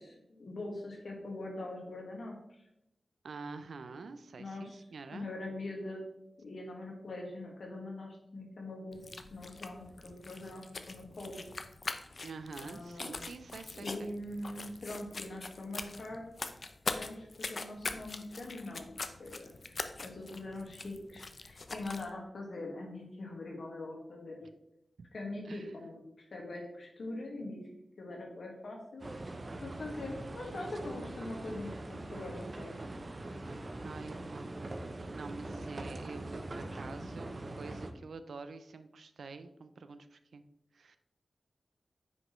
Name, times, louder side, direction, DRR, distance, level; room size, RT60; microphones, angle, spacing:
voice 1, 0.0-2.3 4.4-4.8 5.1-6.0 6.4-9.0 9.3-11.4 12.6-13.2 13.7-16.2 17.0-18.9 19.2-24.4 25.1-27.6 28.0-29.1 29.6-32.7 33.8-34.0, left 2 dB, 75° left, 0 dB, 1.8 m, -43 dB
voice 2, 3.2-5.3 12.2-14.1 25.0-25.1 25.4-25.8 33.8-34.5 34.8-40.4 40.7-41.0, right 4 dB, 90° right, 11 dB, 0.5 m, -47 dB
sound 1, 8.9-22.1, left 3 dB, 50° left, 0.6 m, -43 dB
sound 2, 29.0-37.9, right 2 dB, 35° right, 0.7 m, -42 dB
9.4 x 5.1 x 3.1 m, 0.82 s
wide cardioid pair, 105°, 0 cm